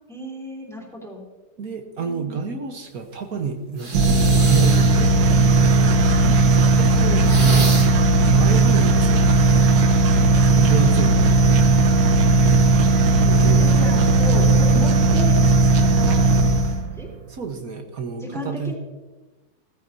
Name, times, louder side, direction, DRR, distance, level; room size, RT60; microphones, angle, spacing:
voice 1, 0.1-1.2 2.0-2.3 6.2-6.7 8.3-8.6 13.6-15.3 15.7-16.2 16.5-17.1 18.2-18.7, equal, ahead, -2 dB, 2.9 m, -34 dB
voice 2, 1.6-6.0 6.8-7.7 8.3-9.6 10.3-11.3 13.2-13.6 17.3-18.7, right 5 dB, 55° right, 5 dB, 1.5 m, -29 dB
sound 1, 3.8-5.1 7.2-8.1, right 2 dB, 30° right, 1.7 m, -29 dB
sound 2, 3.9-16.9, right 3 dB, 80° right, 1.7 m, -16 dB
17.5 x 14.5 x 2.7 m, 1.2 s
omnidirectional pair, 1.9 m